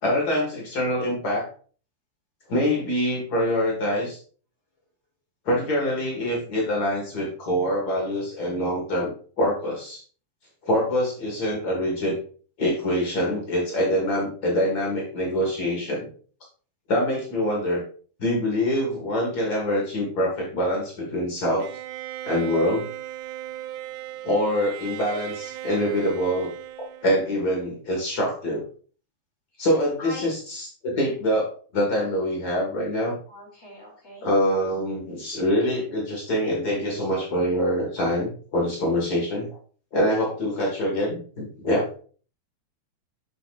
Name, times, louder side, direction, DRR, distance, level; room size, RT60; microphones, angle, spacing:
voice 1, 0.0-1.5 2.5-4.2 5.4-10.0 10.6-12.2 12.6-16.1 16.9-17.8 18.2-21.7 22.2-22.9 24.2-26.5 27.0-28.6 29.6-33.1 34.2-39.6 39.9-41.9, equal, 80° left, -2 dB, 0.8 m, -25 dB
Bowed string instrument, 21.6-27.7, right 12 dB, 85° right, 2.7 m, -37 dB
voice 2, 30.0-30.4 33.3-34.3, left 1 dB, 20° left, -2 dB, 2.0 m, -41 dB
7.7 x 7.0 x 2.5 m, 0.41 s
omnidirectional pair, 4.8 m